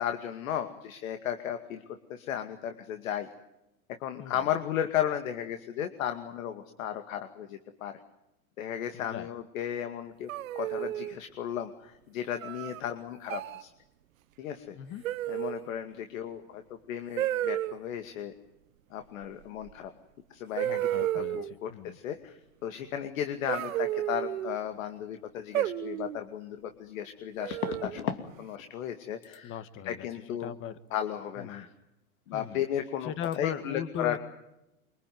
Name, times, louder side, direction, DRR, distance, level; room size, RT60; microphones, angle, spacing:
voice 1, 0.0-3.3 4.0-8.0 8.6-10.3 10.5-13.7 14.4-14.8 15.3-18.3 18.9-19.9 20.3-20.8 21.1-29.6 29.8-30.5 30.9-31.7 32.3-34.2, left 10 dB, 65° left, 8 dB, 2.3 m, -35 dB
voice 2, 8.9-9.3 14.7-15.0 20.6-22.0 29.4-30.8 31.4-31.7 32.3-32.6 33.0-34.2, left 9 dB, 30° left, 14 dB, 1.7 m, -38 dB
sound 1, 10.3-11.2 12.4-12.8 13.3-13.6 15.0-15.7 17.2-17.8 19.7-19.8 20.6-21.5 23.5-24.6 25.5-26.2 27.4-28.0, right 13 dB, 70° right, 1.3 m, -32 dB
cartoon running, 26.0-26.1 27.5-28.3 28.6-29.0 29.2-29.4 32.3-32.5 32.7-33.0 33.2-33.4, left 8 dB, 85° left, 3.0 m, -36 dB
24.5 x 23.5 x 9.5 m, 0.91 s
hypercardioid pair, 135°, 42 cm